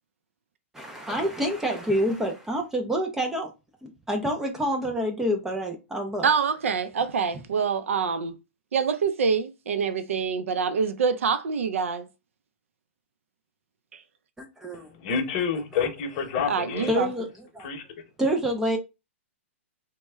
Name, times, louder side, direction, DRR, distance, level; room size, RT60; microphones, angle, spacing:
voice 1, 0.7-3.5 3.8-6.3 14.4-15.2 16.9-17.3 17.5-17.7 18.2-18.8, equal, 5° right, 0.4 m, -27 dB
voice 2, 6.2-8.3 8.7-12.1 16.5-17.1, right 6 dB, 85° right, 0.5 m, -25 dB
voice 3, 15.0-17.0 17.6-17.8, left 6 dB, 40° left, 0.8 m, -28 dB
3.1 x 2.1 x 3.4 m
hypercardioid pair, 150°, 7 cm